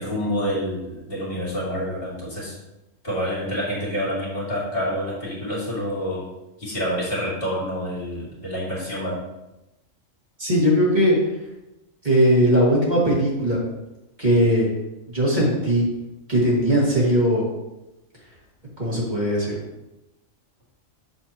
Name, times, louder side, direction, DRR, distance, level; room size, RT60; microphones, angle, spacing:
voice 1, 0.0-2.6 3.0-6.2 6.6-9.2, equal, 45° left, -6 dB, 2.3 m, -27 dB
voice 2, 10.4-11.2 12.0-13.6 14.2-14.7 15.1-15.9 16.3-17.4 18.8-19.5, equal, 35° right, -6 dB, 2.0 m, -19 dB
6.9 x 6.4 x 2.9 m, 0.97 s
omnidirectional pair, 1.4 m